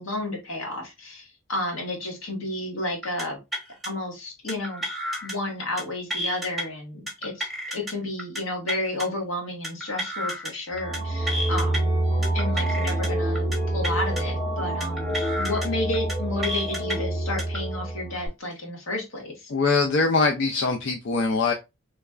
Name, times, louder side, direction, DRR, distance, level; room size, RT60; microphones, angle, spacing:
voice 1, 0.0-3.4 3.8-4.8 5.2-7.5 7.7-11.8 12.3-19.5, left 2 dB, 85° left, 1 dB, 1.4 m, -31 dB
sound 1, 3.0-3.2 3.5-3.9 4.5-5.3 5.6-5.8 6.1-6.6 7.1-7.9 8.2-8.4 8.7-9.1 9.6-10.5 10.8-11.0 11.3-11.8 12.2-13.1 13.4-13.6 13.8-14.2 14.8-15.7 15.9-16.1 16.4-17.0 17.4-17.6, equal, ahead, 0.9 m, -31 dB
sound 2, 10.7-18.3, right 1 dB, 20° left, 2.1 m, -27 dB
voice 2, 19.5-21.5, left 4 dB, 60° left, 3 dB, 0.4 m, -22 dB
3.3 x 3.1 x 2.3 m, 0.24 s
head